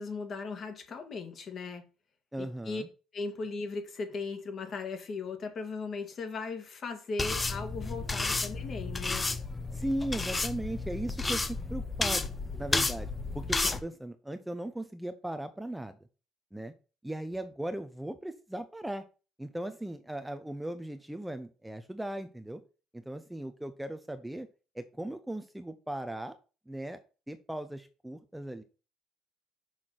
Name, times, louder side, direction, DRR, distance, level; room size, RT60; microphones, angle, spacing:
voice 1, 0.0-1.8 2.4-2.8 3.1-9.2, left 4 dB, 45° left, 1.8 m, -37 dB
voice 2, 2.3-2.9 9.7-12.3 12.6-13.1 13.3-16.0 16.5-16.7 17.0-19.0 19.4-22.6 22.9-24.5 24.7-26.4 26.7-27.0 27.3-28.6, right 1 dB, 5° right, 0.6 m, -38 dB
sound 1, 7.2-13.8, left 3 dB, 20° left, 0.8 m, -32 dB
6.1 x 4.8 x 5.7 m
cardioid pair, 105°, 0 cm